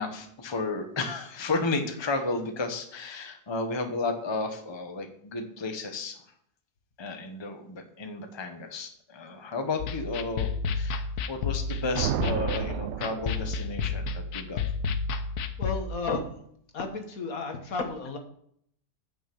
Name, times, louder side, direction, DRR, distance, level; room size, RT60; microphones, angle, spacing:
voice 1, 0.0-6.2 7.0-14.6, left 3 dB, 20° left, 5 dB, 1.0 m, -33 dB
sound 1, 9.8-15.8, left 5 dB, 85° left, 1.3 m, -31 dB
sound 2, 11.9-13.9, right 10 dB, 70° right, 0.7 m, -32 dB
voice 2, 15.6-16.3 16.7-18.2, left 3 dB, 65° left, 5 dB, 1.8 m, -32 dB
9.4 x 5.9 x 7.0 m, 0.67 s
omnidirectional pair, 1.6 m